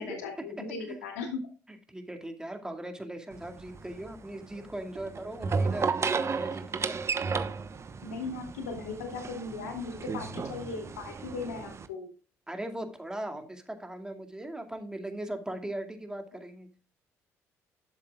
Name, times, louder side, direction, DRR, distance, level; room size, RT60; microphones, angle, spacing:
voice 1, 0.0-1.4 8.0-12.1, left 4 dB, 75° left, 3 dB, 2.6 m, -38 dB
voice 2, 1.9-7.0 12.5-16.7, right 1 dB, 10° right, 5 dB, 2.2 m, -39 dB
sound 1, 3.3-11.9, right 5 dB, 35° right, 1.1 m, -34 dB
11.5 x 7.9 x 2.4 m, 0.35 s
figure-of-eight pair, 50°, 8 cm